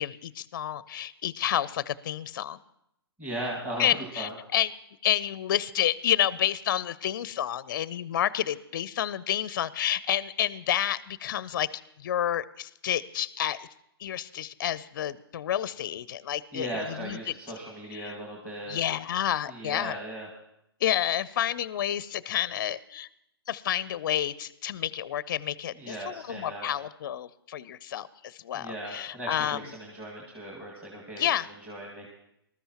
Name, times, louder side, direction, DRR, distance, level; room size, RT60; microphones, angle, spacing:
voice 1, 0.0-2.6 3.8-4.7 5.0-13.7 14.0-17.3 17.9-18.1 18.7-20.0 20.8-23.1 23.5-29.7 31.1-31.5, left 11 dB, 50° left, 18 dB, 0.4 m, -29 dB
voice 2, 3.2-4.3 16.5-18.8 19.5-20.3 25.8-26.7 28.5-31.3 31.6-32.1, right 1 dB, 10° right, -3 dB, 2.0 m, -37 dB
19.5 x 13.0 x 2.9 m, 0.79 s
hypercardioid pair, 140°, 13 cm